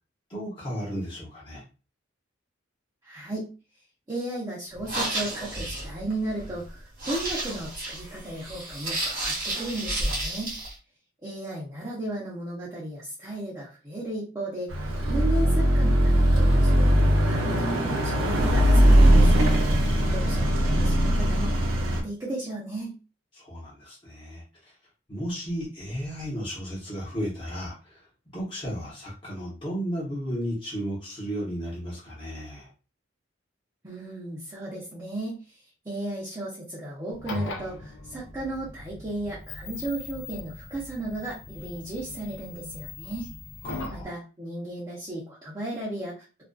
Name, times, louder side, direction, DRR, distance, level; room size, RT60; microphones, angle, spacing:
voice 1, 0.3-1.6 19.8-20.4 23.3-24.4 25.1-28.0 28.3-32.7 43.6-44.2, equal, 25° left, -6 dB, 0.8 m, -34 dB
voice 2, 3.0-3.5 4.1-10.5 11.2-19.4 20.1-23.0 33.8-35.6 35.8-43.3 43.9-46.4, right 1 dB, 20° right, -7 dB, 0.6 m, -35 dB
sound 1, 4.7-10.7, right 1 dB, 45° right, 0.9 m, -32 dB
Car passing by / Accelerating revving vroom, 14.7-22.0, equal, 90° right, 0.6 m, -20 dB
sound 2, 37.1-44.0, left 3 dB, 65° left, 0.5 m, -39 dB
2.4 x 2.3 x 2.3 m, 0.33 s
head